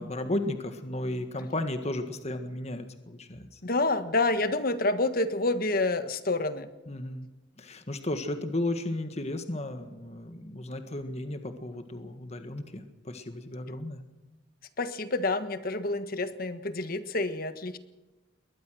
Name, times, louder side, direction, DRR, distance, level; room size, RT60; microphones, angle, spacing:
voice 1, 0.0-3.6 6.9-7.3 7.6-14.0, left 1 dB, 35° left, 8 dB, 1.6 m, -34 dB
voice 2, 3.6-6.7 14.8-17.8, left 2 dB, 50° left, 10 dB, 1.5 m, -28 dB
22.0 x 19.0 x 6.3 m, 1.1 s
head